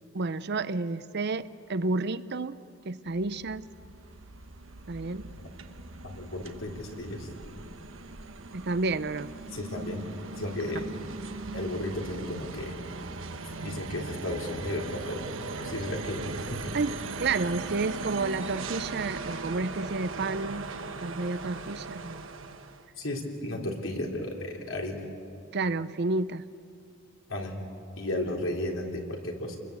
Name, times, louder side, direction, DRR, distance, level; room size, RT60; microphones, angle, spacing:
voice 1, 0.1-2.5 2.8-3.7 4.9-5.3 8.5-9.3 16.7-20.7 21.0-22.3 25.5-26.4, right 3 dB, 55° right, 14 dB, 0.7 m, -30 dB
sound 1, 3.0-22.9, right 3 dB, 70° right, 1.2 m, -39 dB
voice 2, 6.0-7.3 9.5-10.1 10.4-10.8 11.5-12.8 13.6-15.2 15.6-16.8 23.0-25.0 27.3-27.6 28.0-29.6, left 1 dB, 75° left, 0 dB, 3.8 m, -34 dB
29.5 x 21.0 x 8.2 m, 2.5 s
head